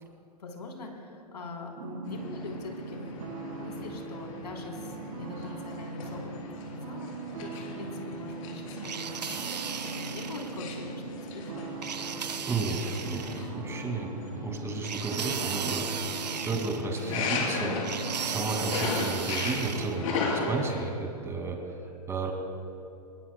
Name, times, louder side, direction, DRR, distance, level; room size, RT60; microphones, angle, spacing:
voice 1, 0.4-3.1 3.6-9.1 9.9-11.9, left 3 dB, 80° left, 0 dB, 3.6 m, -42 dB
sound 1, 1.8-20.5, right 5 dB, 55° right, 1.9 m, -41 dB
sound 2, 2.0-20.9, left 4 dB, 50° left, 3.7 m, -37 dB
sound 3, 8.8-10.6 11.8-13.5 14.8-17.2 17.8-20.0, right 7 dB, 90° right, 0.9 m, -36 dB
voice 2, 9.6-10.0 12.5-14.1 14.4-16.2 16.4-21.6 22.1-22.3, right 3 dB, 15° right, 2 dB, 2.3 m, -33 dB
22.0 x 20.0 x 2.3 m, 2.6 s
hypercardioid pair, 130°, 21 cm